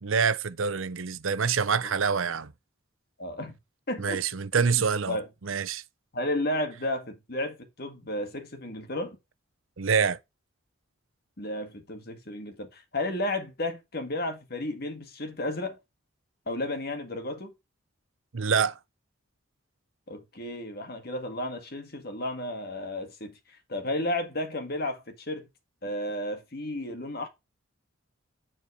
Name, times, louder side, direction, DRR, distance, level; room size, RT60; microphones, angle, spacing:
voice 1, 0.0-2.5 4.0-5.2 5.4-5.8 9.8-10.2 18.3-18.8, right 6 dB, 70° right, 0.7 m, -26 dB
voice 2, 3.2-3.6 3.9-4.2 4.5-5.3 6.1-9.2 11.4-15.8 16.5-17.5 20.1-25.5 25.8-27.3, left 1 dB, 45° left, 1.8 m, -33 dB
9.7 x 4.3 x 4.8 m
head